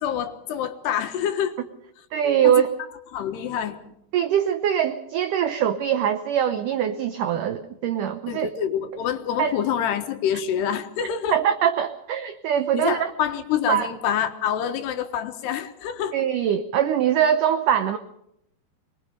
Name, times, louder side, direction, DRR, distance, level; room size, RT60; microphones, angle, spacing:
voice 1, 0.0-1.6 2.4-2.6 3.1-3.8 8.3-11.4 12.7-16.2, left 9 dB, 75° left, 8 dB, 3.4 m, -26 dB
voice 2, 2.1-2.7 4.1-8.5 9.4-9.5 11.3-13.1 13.7-13.9 16.1-18.0, right 9 dB, 80° right, 10 dB, 1.8 m, -22 dB
24.5 x 21.0 x 5.2 m, 0.76 s
omnidirectional pair, 4.9 m